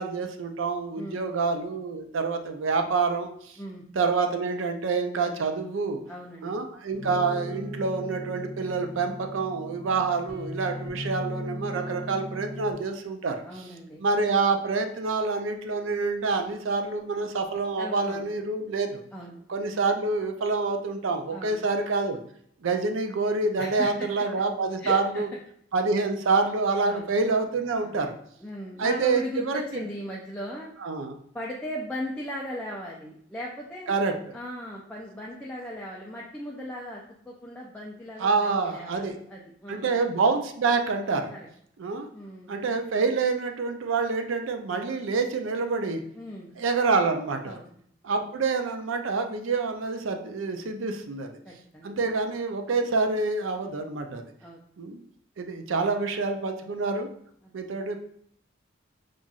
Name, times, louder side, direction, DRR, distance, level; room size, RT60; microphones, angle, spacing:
voice 1, 0.0-3.6 4.0-6.0 6.4-13.4 14.0-19.0 19.5-22.2 22.6-25.3 25.7-28.1 28.8-29.6 30.8-31.2 33.9-34.3 38.2-39.1 39.7-41.3 41.8-42.1 42.5-46.0 46.6-47.6 48.0-51.4 51.8-54.2 54.8-55.0 55.4-57.1 57.5-58.0, right 4 dB, 80° right, 5 dB, 0.5 m, -27 dB
voice 2, 1.0-1.4 3.6-3.8 6.1-6.6 13.4-14.0 17.8-18.3 19.1-19.4 21.3-21.6 23.6-24.3 24.8-25.2 26.9-27.1 27.8-28.0 28.4-30.7 31.3-33.9 34.3-39.9 41.3-41.5 42.1-42.7 46.1-46.5 47.4-47.8 48.2-48.3 51.4-52.2 54.4-54.6 57.4-57.5, equal, 5° left, -4 dB, 0.4 m, -38 dB
sound 1, 6.9-12.7, equal, 60° right, 1.0 m, -37 dB
5.5 x 2.5 x 2.4 m, 0.67 s
head